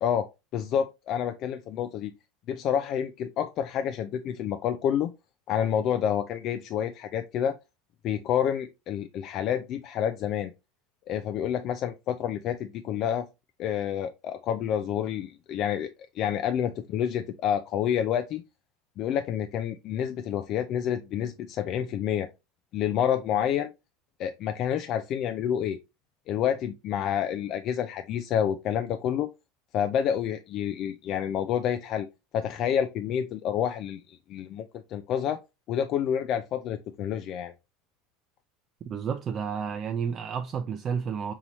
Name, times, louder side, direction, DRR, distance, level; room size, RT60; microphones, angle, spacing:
voice 1, 0.0-2.1 2.5-5.1 5.5-7.6 8.0-10.5 11.1-13.3 13.6-15.9 16.2-18.4 19.0-22.3 22.7-23.7 24.2-25.8 26.3-29.3 29.7-32.1 32.3-35.4 35.7-37.5, left 9 dB, 45° left, 0.4 m, -28 dB
voice 2, 38.9-41.3, right 7 dB, 35° right, 0.4 m, -31 dB
5.4 x 2.9 x 2.9 m
supercardioid pair, 135°, 0 cm